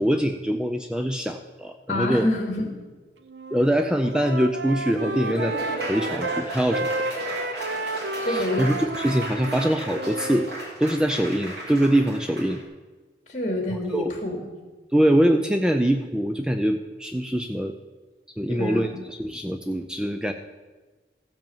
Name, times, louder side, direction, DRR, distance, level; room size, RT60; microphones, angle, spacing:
voice 1, 0.0-2.3 3.5-5.6 5.8-6.9 8.3-10.5 10.8-12.6 13.9-14.1 14.9-17.7 18.4-20.3, right 1 dB, 5° right, 5 dB, 0.4 m, -23 dB
voice 2, 1.9-2.7 8.2-8.7 13.3-14.4 18.5-18.9, left 1 dB, 45° left, 2 dB, 2.5 m, -27 dB
Wind instrument woodwind instrument, 3.2-3.7 4.0-10.5, right 2 dB, 90° right, 0.8 m, -32 dB
Laughter / Applause, 4.7-12.6, right 1 dB, 70° right, 3.3 m, -35 dB
15.0 x 5.3 x 7.2 m, 1.3 s
head